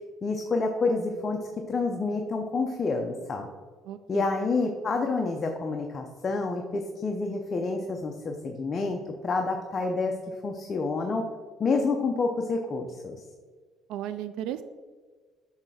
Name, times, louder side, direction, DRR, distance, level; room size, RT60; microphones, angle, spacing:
voice 1, 0.2-1.4 1.7-3.5 4.1-10.1 10.4-11.3 11.6-13.2, left 3 dB, 35° left, 3 dB, 0.7 m, -28 dB
voice 2, 3.9-4.3 13.9-14.6, right 11 dB, 80° right, 12 dB, 0.4 m, -35 dB
8.2 x 3.3 x 6.3 m, 1.5 s
cardioid pair, 105°, 0 cm